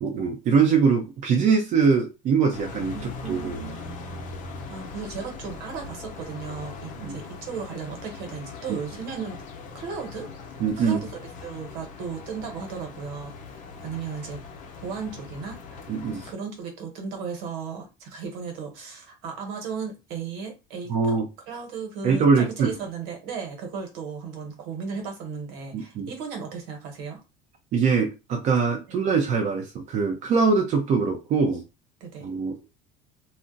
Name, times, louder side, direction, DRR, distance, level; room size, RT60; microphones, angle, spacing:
voice 1, 0.0-3.0 3.3-3.6 7.0-7.2 8.7-8.8 10.6-11.0 15.9-16.3 20.9-21.3 22.0-22.7 25.7-26.1 27.7-31.6 32.2-32.6, right 5 dB, 50° right, 0.7 m, -22 dB
sound 1, 2.5-16.3, left 4 dB, 55° left, 0.7 m, -40 dB
voice 2, 2.9-3.8 4.7-9.4 9.7-10.3 10.8-14.4 14.8-15.9 16.3-21.2 21.5-27.2 32.0-32.3, right 5 dB, 80° right, 1.3 m, -35 dB
2.5 x 2.0 x 3.9 m
supercardioid pair, 110°, 16 cm